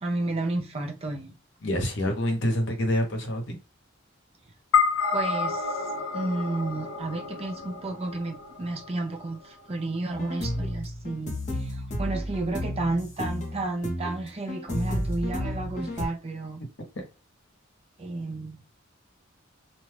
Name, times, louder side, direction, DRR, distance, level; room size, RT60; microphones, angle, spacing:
voice 1, 0.0-1.3 5.1-5.8 6.1-16.6 18.0-18.6, right 2 dB, 30° right, 0.6 m, -32 dB
voice 2, 1.6-3.6 17.0-17.1, equal, 60° left, 0.9 m, -27 dB
sound 1, 4.7-9.3, left 5 dB, 80° left, 0.6 m, -29 dB
sound 2, 10.1-16.1, equal, 40° left, 1.0 m, -32 dB
2.6 x 2.3 x 3.1 m
head